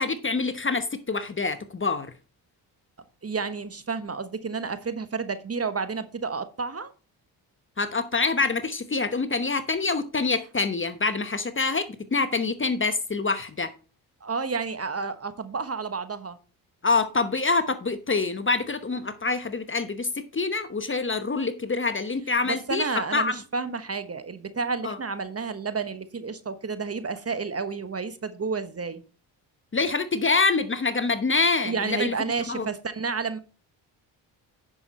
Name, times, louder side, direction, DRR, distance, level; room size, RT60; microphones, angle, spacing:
voice 1, 0.0-2.1 7.8-13.7 16.8-23.4 24.8-25.0 29.7-32.1 32.5-32.7, left 3 dB, 25° left, 0.9 m, -26 dB
voice 2, 3.2-6.9 14.2-16.4 22.5-29.0 31.6-33.4, right 4 dB, 30° right, 1.1 m, -31 dB
9.6 x 6.2 x 4.1 m
supercardioid pair, 60°, 48 cm